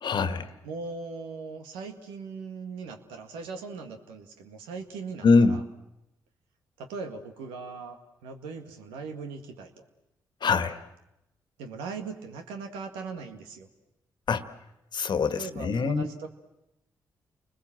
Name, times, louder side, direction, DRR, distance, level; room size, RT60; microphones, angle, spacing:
voice 1, 0.0-0.5 5.2-5.6 10.4-10.8 14.3-14.5 14.9-16.0, left 4 dB, 60° left, 11 dB, 1.6 m, -23 dB
voice 2, 0.6-5.6 6.8-8.0 8.2-9.7 11.6-13.7 15.3-16.3, right 4 dB, 90° right, 5 dB, 1.9 m, -39 dB
29.5 x 20.5 x 7.6 m, 0.88 s
hypercardioid pair, 45°, 9 cm